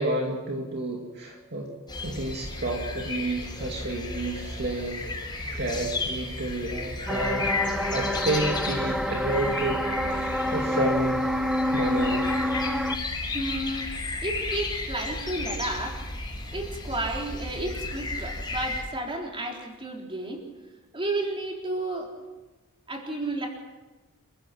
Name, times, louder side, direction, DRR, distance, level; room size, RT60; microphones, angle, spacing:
voice 1, 0.0-5.0 5.6-9.8 10.1-11.2 11.7-12.2, right 2 dB, 50° right, 0 dB, 2.5 m, -30 dB
sound 1, 1.9-18.8, left 2 dB, 20° left, 5.9 m, -34 dB
sound 2, 7.1-13.0, left 1 dB, ahead, 1.0 m, -27 dB
voice 2, 13.3-13.9 14.2-16.1 16.5-20.4 20.9-22.1 22.9-23.5, right 2 dB, 25° right, 0 dB, 4.0 m, -32 dB
29.0 x 15.5 x 6.1 m, 1.2 s
head